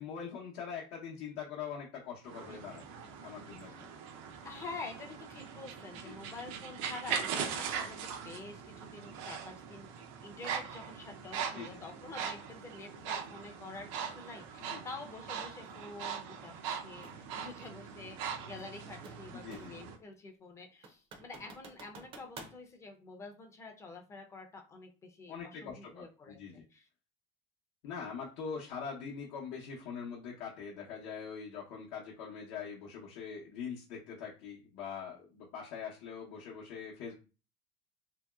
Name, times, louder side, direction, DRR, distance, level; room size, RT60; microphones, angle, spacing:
voice 1, 0.0-2.8 3.2-3.9 6.0-6.2 11.4-11.8 14.7-14.8 19.3-19.7 25.3-26.6 27.8-37.2, left 6 dB, 70° left, -3 dB, 0.7 m, -43 dB
voice 2, 2.3-2.6 3.7-3.8 4.4-26.4 26.7-26.9, left 3 dB, 20° left, 3 dB, 0.5 m, -48 dB
sound 1, 2.3-20.0, right 7 dB, 85° right, 0.6 m, -41 dB
sound 2, 17.0-17.2 18.6-19.9 20.3-20.4 20.8-22.6, right 3 dB, 35° right, 0.5 m, -50 dB
2.9 x 2.7 x 2.3 m, 0.33 s
cardioid pair, 160°, 16 cm